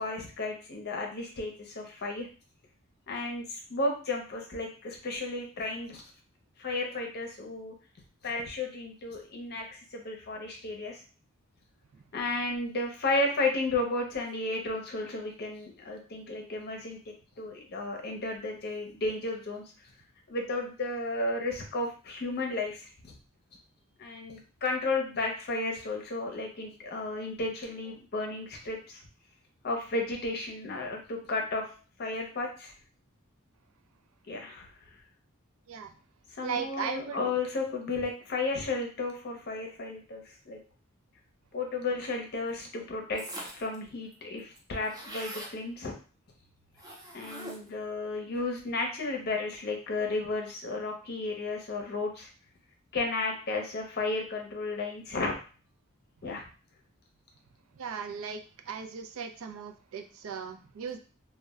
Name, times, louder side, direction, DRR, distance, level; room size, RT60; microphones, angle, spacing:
voice 1, 0.0-2.3 3.1-6.0 6.6-7.7 8.2-11.0 12.1-17.0 17.4-19.6 20.3-23.1 24.0-29.0 29.6-31.6 32.0-32.7 34.3-34.7 36.3-40.6 41.5-43.2 43.5-45.9 47.1-52.3 52.9-55.4 56.2-56.4, left 2 dB, 50° left, 2 dB, 0.6 m, -33 dB
voice 2, 36.4-37.3 57.8-61.0, right 6 dB, 75° right, 6 dB, 0.4 m, -37 dB
sound 1, 43.2-43.7 44.1-44.2 44.4-45.6 46.8-47.8, right 1 dB, 20° right, 0.5 m, -42 dB
2.2 x 2.0 x 3.5 m, 0.37 s
head